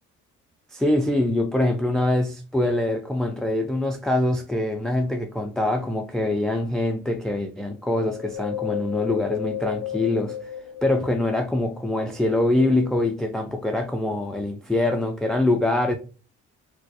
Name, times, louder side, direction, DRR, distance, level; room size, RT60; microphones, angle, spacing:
voice 1, 0.7-10.5 10.8-16.0, left 1 dB, ahead, 0.3 m, -24 dB
Wind, 7.9-11.5 12.0-13.3 13.8-13.9, left 12 dB, 80° left, 0.5 m, -33 dB
4.3 x 2.2 x 2.8 m
cardioid pair, 90°, 30 cm